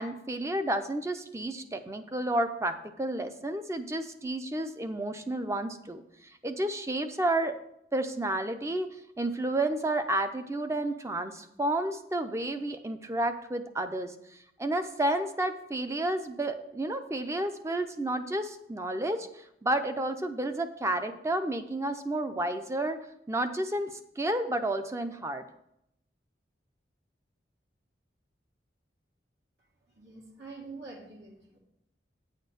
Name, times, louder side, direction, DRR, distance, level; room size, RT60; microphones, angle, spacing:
voice 1, 0.0-7.5 7.9-14.1 14.6-23.0 23.3-25.4, right 1 dB, 15° right, 8 dB, 0.5 m, -31 dB
voice 2, 30.0-31.6, right 3 dB, 80° right, -4 dB, 2.2 m, -46 dB
8.7 x 4.4 x 6.6 m, 0.78 s
head